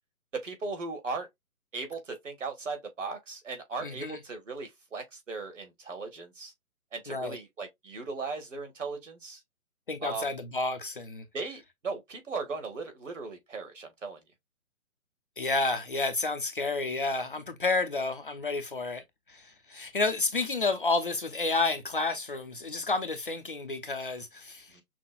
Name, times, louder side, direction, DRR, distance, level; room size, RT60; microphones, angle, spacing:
voice 1, 0.3-1.3 1.7-6.5 6.9-9.4 10.0-10.3 11.3-14.2 24.7-24.8, right 4 dB, 55° right, 1.6 m, -37 dB
voice 2, 3.8-4.2 7.1-7.4 9.9-11.2 15.4-19.0 19.3-24.7, left 3 dB, 40° left, 0.6 m, -30 dB
5.9 x 2.3 x 2.3 m
figure-of-eight pair, 140°, 44 cm